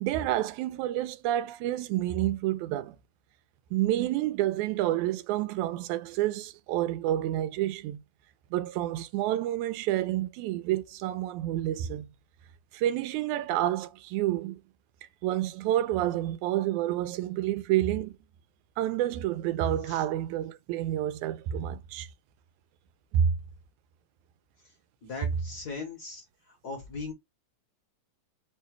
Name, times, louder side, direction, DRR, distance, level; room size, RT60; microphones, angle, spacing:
voice 1, 0.0-3.0 3.7-8.0 8.5-12.1 12.7-14.6 15.2-18.1 18.8-22.1 23.1-23.3, right 13 dB, 85° right, 2.0 m, -29 dB
voice 2, 25.0-27.1, left 3 dB, 55° left, 1.1 m, -39 dB
4.6 x 2.3 x 4.6 m
omnidirectional pair, 3.4 m